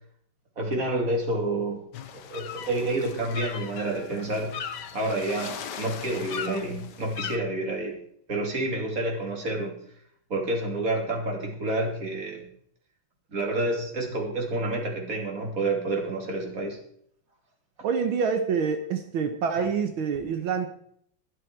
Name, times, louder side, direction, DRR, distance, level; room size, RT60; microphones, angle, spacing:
voice 1, 0.6-1.8 2.1-4.5 4.9-8.0 8.3-9.8 10.3-12.5 13.3-16.8, right 2 dB, 40° right, 1 dB, 3.4 m, -29 dB
sound 1, 1.9-7.4, left 8 dB, 60° left, 1.5 m, -38 dB
voice 2, 17.8-20.7, right 6 dB, 85° right, 7 dB, 1.9 m, -26 dB
22.0 x 7.6 x 4.6 m, 0.65 s
omnidirectional pair, 2.2 m